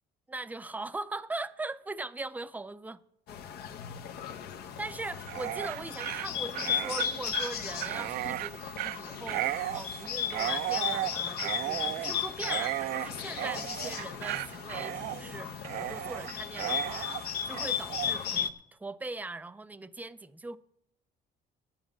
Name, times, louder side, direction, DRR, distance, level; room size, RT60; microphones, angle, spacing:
voice 1, 0.3-3.0 4.8-20.6, right 2 dB, 10° right, 0.4 m, -40 dB
Bird, 3.3-18.5, left 9 dB, 70° left, 0.9 m, -36 dB
Dog, 5.1-18.2, right 14 dB, 70° right, 0.4 m, -35 dB
10.0 x 7.3 x 8.5 m
cardioid pair, 110°, 17 cm